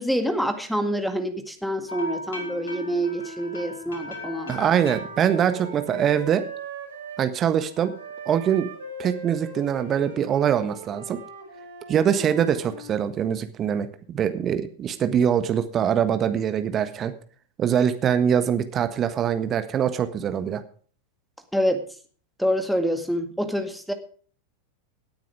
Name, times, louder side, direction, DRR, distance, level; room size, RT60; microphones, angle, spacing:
voice 1, 0.0-4.5 21.5-21.8 22.4-23.9, equal, ahead, 8 dB, 1.9 m, -26 dB
sound 1, 1.9-6.7 7.0-9.1 9.5-10.2, left 1 dB, 65° left, 4.3 m, -40 dB
Wind instrument woodwind instrument, 2.2-7.3 8.0-12.9, right 2 dB, 70° right, 5.7 m, -40 dB
voice 2, 4.5-6.4 7.2-7.9 8.3-8.7 9.0-11.2 11.9-17.1 17.6-20.6, right 8 dB, 25° right, 10 dB, 1.4 m, -23 dB
17.5 x 9.4 x 4.9 m, 0.43 s
figure-of-eight pair, 90°, 0 cm